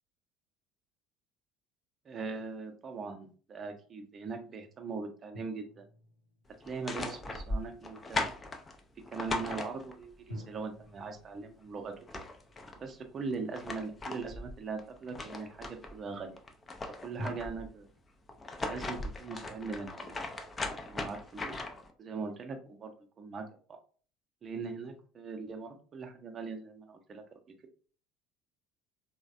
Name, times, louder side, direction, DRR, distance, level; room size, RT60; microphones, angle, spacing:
voice 1, 2.0-5.9 6.6-8.4 9.1-12.2 12.8-16.4 17.0-17.9 18.6-21.6 22.0-23.4 24.4-27.4, right 4 dB, 35° right, 5 dB, 0.6 m, -41 dB
sound 1, 5.3-7.3 10.3-13.6 17.2-17.6, equal, 85° left, 0.7 m, -48 dB
sound 2, 6.6-10.2 11.6-11.7 11.9-12.8 13.3-16.0 16.4-17.7 18.3-21.9, left 2 dB, 25° left, 0.4 m, -38 dB
3.2 x 2.1 x 2.5 m, 0.41 s
figure-of-eight pair, 65°, 0 cm